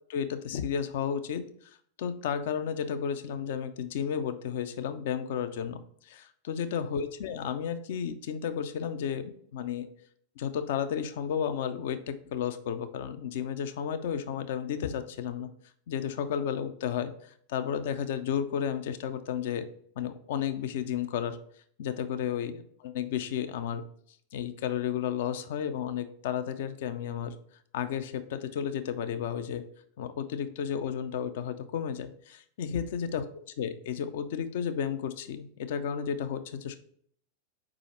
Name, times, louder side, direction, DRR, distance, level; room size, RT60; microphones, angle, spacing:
voice 1, 0.1-1.5 2.0-9.9 10.4-15.5 15.9-19.7 20.0-21.4 21.8-23.8 24.3-27.3 27.7-29.6 30.0-33.2 33.6-36.8, left 8 dB, 55° left, 11 dB, 0.5 m, -32 dB
4.9 x 4.8 x 4.3 m, 0.64 s
figure-of-eight pair, 90°, 0 cm